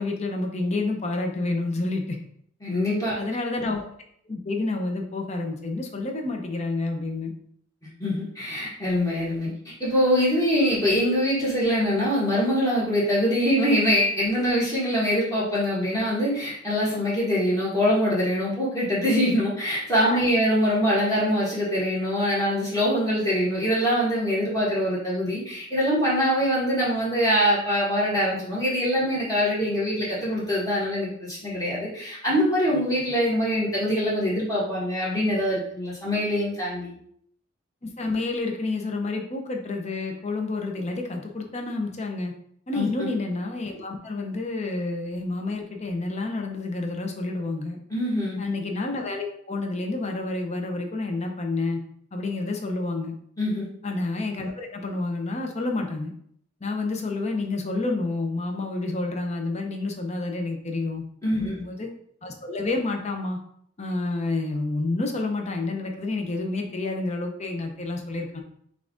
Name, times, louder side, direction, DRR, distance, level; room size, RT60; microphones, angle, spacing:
voice 1, 0.0-2.2 3.1-3.9 4.3-7.3 20.0-20.3 37.8-42.3 42.7-47.8 48.4-51.8 52.1-53.1 53.8-56.1 56.6-61.0 61.4-61.9 62.2-63.4 63.8-68.4, left 2 dB, 35° left, 3 dB, 0.7 m, -29 dB
voice 2, 2.6-3.2 8.0-9.5 9.8-36.9 42.7-43.1 47.9-48.4 53.4-53.7 61.2-61.6, equal, 20° left, -7 dB, 1.5 m, -24 dB
5.6 x 2.5 x 3.7 m, 0.67 s
head